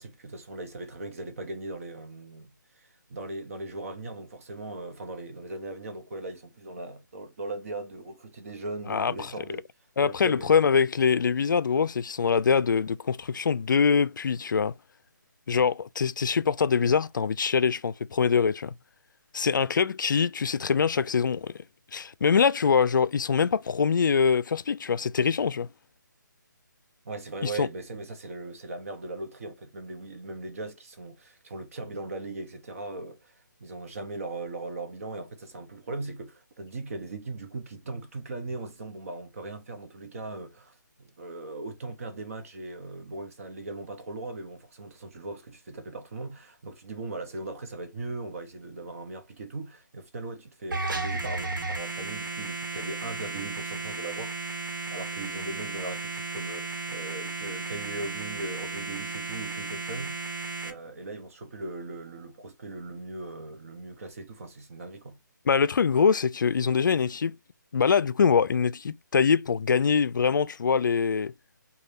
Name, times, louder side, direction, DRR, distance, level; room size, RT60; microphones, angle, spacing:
voice 1, 0.0-9.6 10.0-10.6 15.5-15.7 27.0-54.6 54.9-60.2 60.6-65.2, right 2 dB, 45° right, 0.9 m, -39 dB
voice 2, 8.9-9.3 10.0-14.7 15.5-18.7 19.3-21.5 21.9-25.7 27.4-27.7 65.5-67.4 67.7-71.3, left 6 dB, 75° left, 0.4 m, -24 dB
sound 1, 50.7-60.7, right 3 dB, 90° right, 1.1 m, -34 dB
3.4 x 2.3 x 4.0 m
hypercardioid pair, 160°, 11 cm